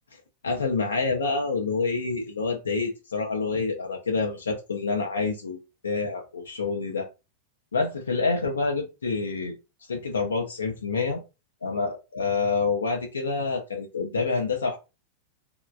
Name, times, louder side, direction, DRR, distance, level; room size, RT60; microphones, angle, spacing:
voice 1, 0.1-7.1 7.7-9.5 9.9-11.2 11.6-14.8, left 4 dB, 70° left, 3 dB, 0.4 m, -27 dB
3.0 x 2.2 x 2.3 m, 0.28 s
figure-of-eight pair, 90°, 0 cm